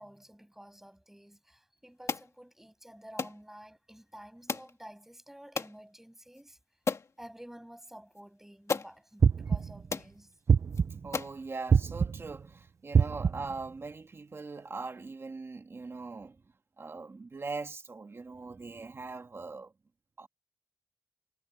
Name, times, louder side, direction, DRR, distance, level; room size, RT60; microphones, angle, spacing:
voice 1, 0.0-6.6 7.2-10.3, equal, 5° right, 8.0 m, -51 dB
sound 1, 2.1-2.3 3.2-3.4 4.5-4.7 5.6-5.8 6.3-6.4 6.9-7.1 8.2-8.3 8.7-8.9 9.6-9.7 9.9-10.1 10.7-10.8 11.1-11.4, left 4 dB, 60° left, 2.0 m, -33 dB
sound 2, 9.2-9.9 10.5-11.1 11.7-12.3 12.9-13.6, right 6 dB, 60° right, 0.7 m, -25 dB
voice 2, 11.0-16.4 16.8-19.7 20.2-20.3, right 4 dB, 45° right, 2.0 m, -41 dB
wide cardioid pair, 130°, 6 cm